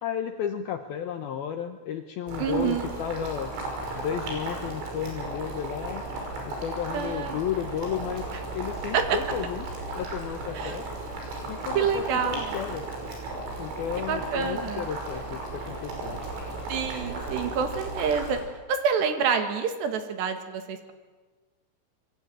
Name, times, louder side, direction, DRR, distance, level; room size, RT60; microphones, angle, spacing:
voice 1, 0.0-3.5 3.9-8.3 8.5-10.9 11.5-12.9 13.6-16.2, left 9 dB, 75° left, 7 dB, 2.3 m, -33 dB
Boiling, 2.3-18.4, right 2 dB, 85° right, 8.2 m, -35 dB
voice 2, 2.4-2.9 6.9-7.4 8.9-9.2 10.6-10.8 11.8-12.6 14.1-14.8 16.7-18.4 18.7-20.9, right 6 dB, 65° right, 7 dB, 3.7 m, -27 dB
25.5 x 22.5 x 9.1 m, 1.3 s
omnidirectional pair, 5.6 m